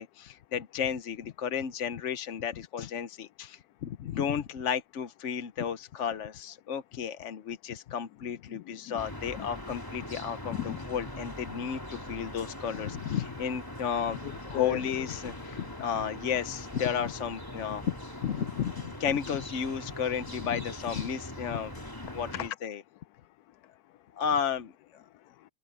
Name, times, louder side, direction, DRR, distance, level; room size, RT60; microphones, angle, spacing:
voice 1, 0.0-14.2 14.5-17.8 18.2-21.7 22.1-22.8 24.2-25.0, left 8 dB, 55° left, 1.0 m, -33 dB
voice 2, 8.5-9.0 9.4-9.5 10.4-10.8 14.2-14.8 15.5-15.8 17.8-17.9 20.2-20.3 22.0-22.6 23.5-24.0 25.1-25.5, left 14 dB, 80° left, 1.1 m, -38 dB
sound 1, 9.0-22.5, left 1 dB, 15° left, 3.2 m, -42 dB
omnidirectional pair, 1.6 m